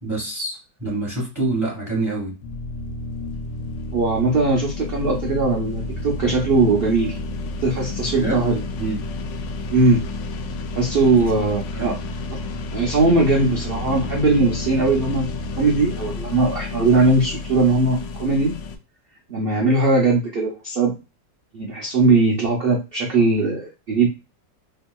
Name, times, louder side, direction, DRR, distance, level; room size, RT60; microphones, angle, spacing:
voice 1, 0.0-2.3 8.2-8.5 8.8-9.1 11.2-11.3 11.7-12.0, right 2 dB, 10° right, 1.6 m, -26 dB
sound 1, 2.4-18.8, left 2 dB, 85° left, 1.2 m, -31 dB
voice 2, 3.9-7.2 7.6-8.6 9.7-10.0 10.8-11.9 12.7-15.3 15.6-18.5 19.3-20.9 21.5-24.1, right 3 dB, 90° right, 0.5 m, -19 dB
2.8 x 2.7 x 2.2 m
omnidirectional pair, 1.9 m